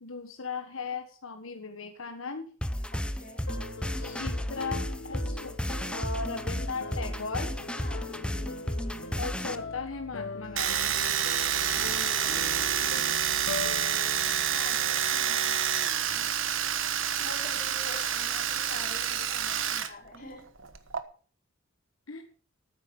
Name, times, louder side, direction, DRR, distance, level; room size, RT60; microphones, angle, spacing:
voice 1, 0.0-2.5 4.2-5.5 5.9-7.5 9.2-11.0 22.1-22.2, left 4 dB, 90° left, 6 dB, 1.4 m, -37 dB
sound 1, 2.6-9.5, equal, 5° left, 0.6 m, -33 dB
voice 2, 2.9-3.5 3.9-4.2 7.7-8.1 11.8-12.5 12.9-13.5 14.5-16.4 16.7-20.4, left 2 dB, 45° left, 1 dB, 5.0 m, -47 dB
sound 2, 3.5-15.6, left 2 dB, 70° left, 1.1 m, -41 dB
Domestic sounds home sounds, 10.6-19.9 20.1-21.0, right 9 dB, 70° right, 1.3 m, -28 dB
13.0 x 9.6 x 5.4 m, 0.40 s
head